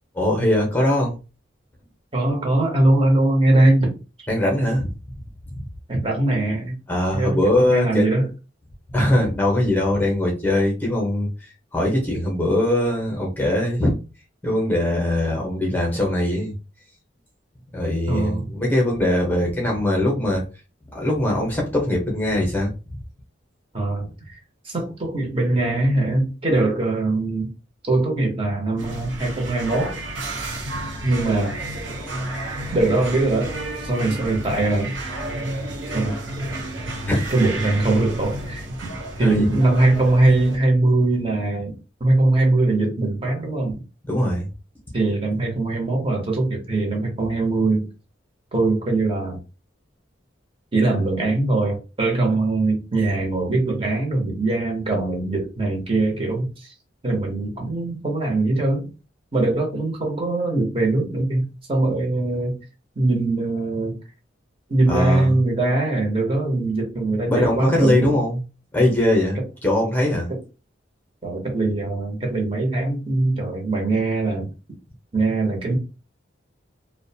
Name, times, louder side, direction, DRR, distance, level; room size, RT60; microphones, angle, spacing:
voice 1, 0.1-1.2 4.3-4.9 5.5-5.6 6.9-8.1 8.9-11.3 11.7-13.9 14.4-16.5 17.7-20.4 20.9-23.0 31.0-31.1 37.0-37.3 39.2-39.5 44.1-44.5 64.9-65.3 67.2-68.4 68.7-70.3, left 1 dB, 10° left, 0.7 m, -21 dB
voice 2, 2.1-4.0 5.9-6.8 7.1-8.3 18.1-18.5 23.7-24.4 24.6-27.5 27.8-30.0 31.0-31.6 32.7-33.5 33.8-34.9 35.9-36.1 37.3-38.9 39.2-41.7 42.0-43.8 44.9-47.9 48.5-49.4 50.7-56.7 57.0-58.9 59.3-62.6 63.0-63.9 64.7-68.1 70.3-70.4 71.2-74.5 75.1-75.8, right 2 dB, 30° right, 0.7 m, -21 dB
sound 1, 28.8-40.6, right 1 dB, 75° right, 0.7 m, -31 dB
2.4 x 2.1 x 2.7 m
head